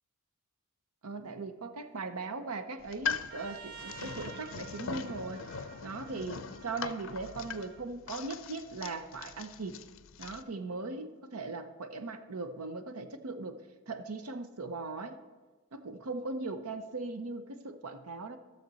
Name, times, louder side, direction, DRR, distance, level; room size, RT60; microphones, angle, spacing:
voice 1, 1.0-5.4 5.8-9.9 10.2-13.6 13.9-15.2 15.7-18.4, right 3 dB, 85° right, 9 dB, 0.7 m, -39 dB
sound 1, 2.8-10.4, left 6 dB, 60° left, 0.4 m, -41 dB
Trumpet, 3.3-7.8, right 7 dB, 45° right, 0.4 m, -50 dB
15.0 x 6.7 x 4.0 m, 1.2 s
head